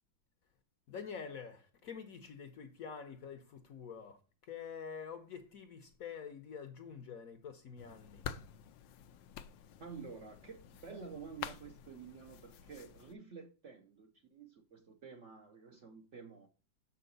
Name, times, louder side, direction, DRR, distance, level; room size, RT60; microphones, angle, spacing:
voice 1, 0.9-8.3, left 6 dB, 60° left, 1.0 m, -47 dB
sound 1, 7.8-13.2, left 9 dB, 85° left, 1.3 m, -49 dB
voice 2, 9.8-16.5, right 5 dB, 55° right, 0.9 m, -50 dB
7.1 x 5.6 x 3.9 m
omnidirectional pair, 2.0 m